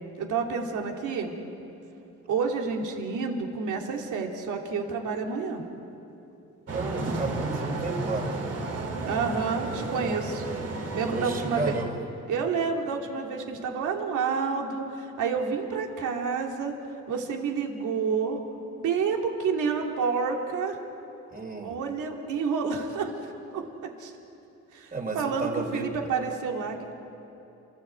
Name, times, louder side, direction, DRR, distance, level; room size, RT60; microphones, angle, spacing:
voice 1, 0.2-1.3 2.3-5.6 9.0-10.4 10.9-11.7 12.3-16.7 17.1-18.4 18.8-20.8 21.6-23.1 23.5-23.6 24.0-24.1 24.7-26.9, right 5 dB, 80° right, 2 dB, 2.9 m, -29 dB
voice 2, 6.7-8.4 11.0-12.0 21.3-21.8 24.9-25.9, right 3 dB, 30° right, 2 dB, 3.8 m, -32 dB
sound 1, 6.7-11.8, right 2 dB, 55° right, 4.1 m, -33 dB
30.0 x 14.0 x 8.1 m, 2.9 s
cardioid pair, 90°, 30 cm